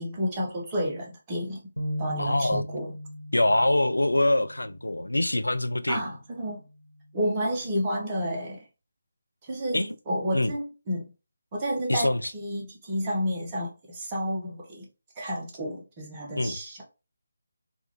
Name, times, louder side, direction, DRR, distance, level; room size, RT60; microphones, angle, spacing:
voice 1, 0.0-1.6 2.0-2.9 5.9-6.6 7.1-8.6 9.4-11.1 11.5-14.9 15.2-16.8, equal, 20° right, 0.7 m, -31 dB
sound 1, 1.8-8.0, equal, 85° right, 0.5 m, -40 dB
voice 2, 2.2-2.6 3.3-6.1 9.7-9.9 10.3-10.5 11.9-12.3 16.4-16.6, left 1 dB, 75° left, 0.3 m, -24 dB
3.3 x 2.3 x 2.9 m
figure-of-eight pair, 150°, 0 cm